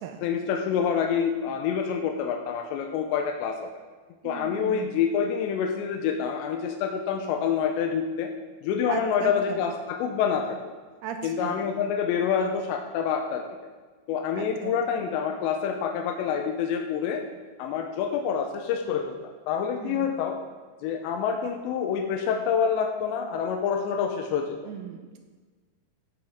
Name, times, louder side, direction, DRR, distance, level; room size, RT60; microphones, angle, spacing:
voice 1, 0.2-3.7 4.2-8.3 8.6-10.6 11.2-13.5 14.1-17.2 17.6-20.4 20.8-24.6, left 7 dB, 90° left, 4 dB, 3.0 m, -27 dB
voice 2, 4.2-4.9 8.9-9.7 11.0-11.7 14.4-15.1 19.8-20.1 24.7-25.3, right 8 dB, 80° right, 5 dB, 2.5 m, -37 dB
16.0 x 7.8 x 3.6 m, 1.4 s
omnidirectional pair, 5.1 m